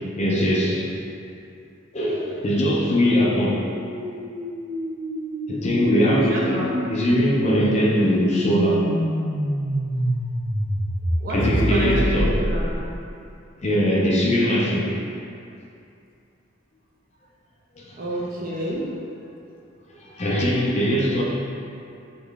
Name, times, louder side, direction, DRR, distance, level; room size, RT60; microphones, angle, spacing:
voice 1, 0.2-0.9 1.9-3.6 5.5-6.6 6.9-8.9 11.3-12.3 13.6-14.9 17.8-17.9 20.0-21.2, equal, 35° left, -3 dB, 0.5 m, -21 dB
sound 1, 2.8-12.9, equal, 80° right, 1.4 m, -27 dB
voice 2, 6.1-6.7 11.2-12.7 18.0-18.9, right 1 dB, 45° right, -4 dB, 0.7 m, -29 dB
3.9 x 3.1 x 3.4 m, 2.5 s
head